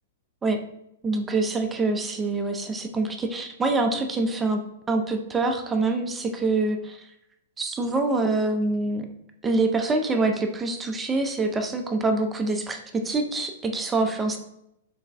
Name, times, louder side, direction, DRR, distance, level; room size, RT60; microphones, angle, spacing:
voice 1, 1.0-7.1 7.6-9.1 9.4-14.4, right 3 dB, 15° right, 4 dB, 0.3 m, -25 dB
3.9 x 2.2 x 2.4 m, 0.79 s
hypercardioid pair, 130°, 0 cm